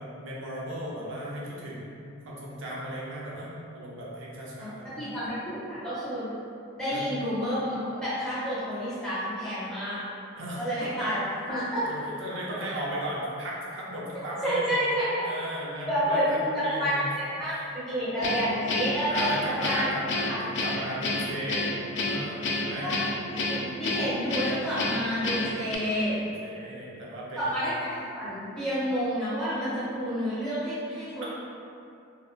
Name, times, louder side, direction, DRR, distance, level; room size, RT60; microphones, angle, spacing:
voice 1, 0.0-5.0 6.9-7.1 10.4-11.1 11.9-14.7 15.2-17.3 19.1-22.9 25.6-27.5 31.2-31.3, right 1 dB, 80° right, -5 dB, 0.5 m, -36 dB
voice 2, 5.0-6.3 6.7-10.0 10.5-11.2 11.5-11.9 14.4-15.2 15.9-17.1 17.4-17.6 17.9-19.9 20.3-20.4 22.8-22.9 23.3-26.2 27.4-31.3, equal, 5° left, -13 dB, 0.9 m, -29 dB
Guitar, 18.2-25.8, left 2 dB, 65° left, 0.3 m, -29 dB
2.8 x 2.1 x 2.3 m, 2.6 s
head